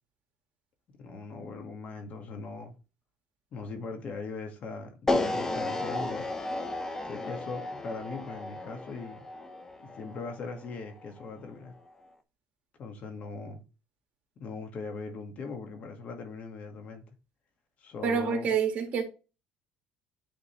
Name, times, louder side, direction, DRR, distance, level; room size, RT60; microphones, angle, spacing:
voice 1, 1.0-2.7 3.5-6.2 7.1-9.2 9.8-11.7 12.8-13.6 14.4-17.0 17.8-18.5, left 4 dB, 50° left, 1.6 m, -40 dB
sound 1, 5.1-11.2, left 2 dB, 15° left, 0.8 m, -33 dB
voice 2, 18.0-19.0, right 6 dB, 50° right, 1.8 m, -27 dB
8.9 x 3.7 x 3.1 m
cardioid pair, 105°, 3 cm